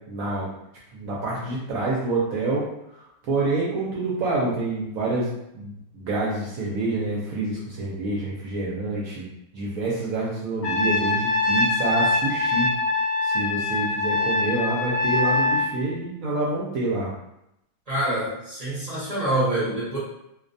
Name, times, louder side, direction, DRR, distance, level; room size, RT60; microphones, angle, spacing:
voice 1, 0.1-0.5 0.9-5.3 5.5-9.2 9.5-12.7 13.2-17.1, right 2 dB, 70° right, -5 dB, 0.9 m, -27 dB
Trumpet, 10.6-15.7, left 2 dB, 65° left, 0.7 m, -23 dB
voice 2, 17.9-20.0, right 1 dB, 40° right, -9 dB, 0.5 m, -26 dB
2.6 x 2.1 x 2.5 m, 0.84 s
omnidirectional pair, 1.7 m